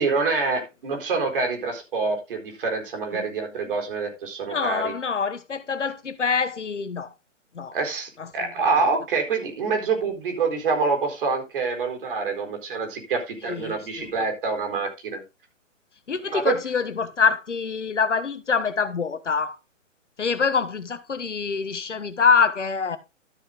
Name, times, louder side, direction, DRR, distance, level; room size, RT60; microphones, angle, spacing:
voice 1, 0.0-4.9 7.7-15.2 16.3-16.5, right 4 dB, 45° right, 4.2 m, -26 dB
voice 2, 4.5-7.1 7.5-7.8 8.2-8.3 8.6-8.8 13.4-14.2 16.1-19.6 20.2-23.0, left 5 dB, 65° left, 1.4 m, -25 dB
13.0 x 6.5 x 3.7 m
figure-of-eight pair, 130°, 38 cm